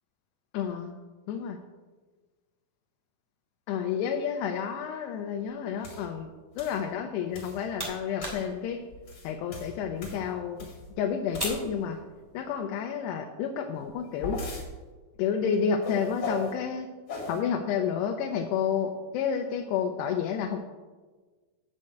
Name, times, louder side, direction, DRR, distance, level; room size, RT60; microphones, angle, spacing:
voice 1, 0.5-0.9 1.3-1.6 3.7-6.3 6.6-8.8 9.2-10.7 11.0-12.0 12.3-14.4 15.2-16.9 17.3-20.6, left 7 dB, 85° left, 3 dB, 2.8 m, -30 dB
sound 1, 5.8-6.1 6.6-6.8 7.3-7.7 8.2-8.5 8.9-10.9 11.3-11.8 13.7-14.7 15.8-16.5 17.1-17.4, left 2 dB, 45° left, 2.6 m, -38 dB
sound 2, 7.2-12.6, equal, 5° right, 1.9 m, -42 dB
8.5 x 6.6 x 7.8 m, 1.4 s
omnidirectional pair, 4.8 m